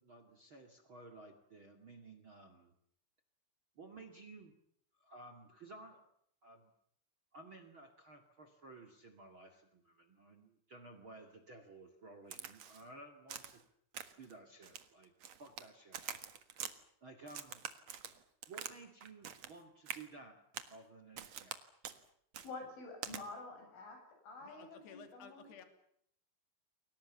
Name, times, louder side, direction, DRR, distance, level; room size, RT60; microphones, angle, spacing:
voice 1, 0.0-2.7 3.8-4.6 5.0-6.1 6.4-6.7 7.3-13.6 14.2-15.1 15.4-16.2 17.0-17.6 18.5-20.4 20.7-21.6, right 2 dB, 40° right, 9 dB, 2.0 m, -55 dB
Crack, 12.3-12.8 13.3-13.6 13.9-14.3 14.6-15.7 15.9-16.7 17.3-18.8 19.0-19.6 19.9-20.0 20.5-20.8 21.2-21.6 21.8-22.0 22.3-22.5 23.0-23.2, right 8 dB, 60° right, 1.8 m, -45 dB
voice 2, 22.4-25.5, left 3 dB, 85° left, 4 dB, 10.5 m, -49 dB
voice 3, 24.4-25.7, left 7 dB, 65° left, 7 dB, 4.8 m, -55 dB
30.0 x 23.0 x 7.2 m, 0.69 s
omnidirectional pair, 5.4 m